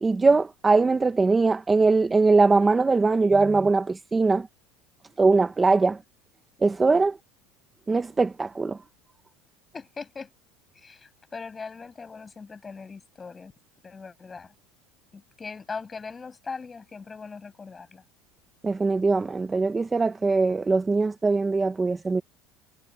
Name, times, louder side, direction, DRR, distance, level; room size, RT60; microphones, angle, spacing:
voice 1, 0.0-4.5 5.2-6.0 6.6-7.2 7.9-8.8 18.6-22.2, right 3 dB, 15° right, 0.9 m, -21 dB
voice 2, 9.7-10.3 10.8-13.5 13.8-14.5 15.1-18.0, left 5 dB, 15° left, 7.7 m, -40 dB
cardioid pair, 145°, 0 cm